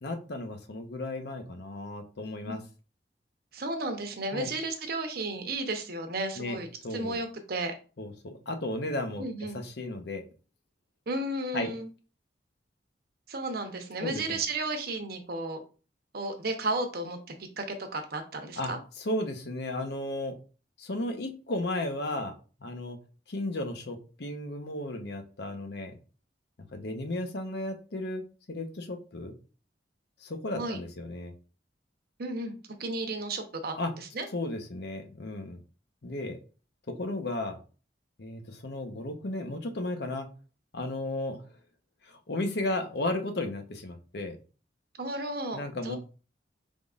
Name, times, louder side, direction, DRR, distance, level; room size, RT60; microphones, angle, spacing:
voice 1, 0.0-2.6 4.3-4.5 6.4-6.6 6.8-7.2 8.0-9.2 9.5-10.2 11.5-11.7 14.0-14.4 18.6-18.7 19.0-20.3 20.8-22.3 22.6-23.0 23.3-25.9 26.7-28.2 28.5-29.3 30.2-31.3 33.8-33.9 34.3-35.6 36.0-36.4 37.0-37.6 38.2-40.3 40.7-41.4 42.3-44.4 45.5-46.0, left 2 dB, 65° left, 6 dB, 0.8 m, -34 dB
voice 2, 3.5-7.7 9.2-9.6 11.1-11.9 13.3-15.6 16.1-17.2 17.6-18.8 30.6-30.8 32.2-32.5 32.8-34.3 45.0-46.0, right 2 dB, 60° right, 6 dB, 0.8 m, -33 dB
5.1 x 3.6 x 2.4 m, 0.36 s
head